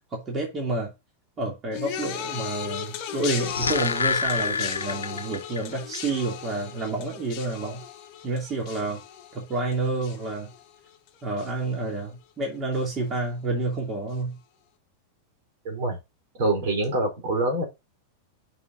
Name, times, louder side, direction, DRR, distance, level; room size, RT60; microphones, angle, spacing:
voice 1, 0.1-0.9 1.4-7.8 8.2-9.0 9.3-10.5 11.2-14.4, right 2 dB, 25° right, 2.8 m, -29 dB
sound 1, 1.7-11.1 11.4-11.9 12.8-12.9, left 9 dB, 40° left, 1.0 m, -37 dB
sound 2, 3.2-5.6 5.9-6.0, left 4 dB, 75° left, 0.4 m, -27 dB
voice 2, 15.6-16.0 16.3-17.6, right 2 dB, 50° right, 4.0 m, -25 dB
8.3 x 6.2 x 2.7 m
figure-of-eight pair, 90°, 0 cm